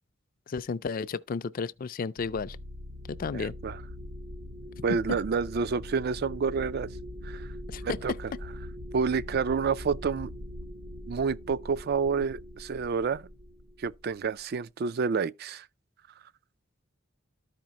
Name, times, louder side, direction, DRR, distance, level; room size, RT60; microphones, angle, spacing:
voice 1, 0.5-2.6 3.1-3.5 7.7-8.2, left 5 dB, 45° left, 0.4 m, -33 dB
sound 1, 2.2-14.4, left 1 dB, 80° right, 1.3 m, -42 dB
voice 2, 3.3-3.8 4.8-6.9 7.2-7.5 7.8-8.1 8.9-10.3 11.1-13.3 13.8-15.7, right 5 dB, 50° right, 0.4 m, -29 dB
13.0 x 5.1 x 2.9 m
head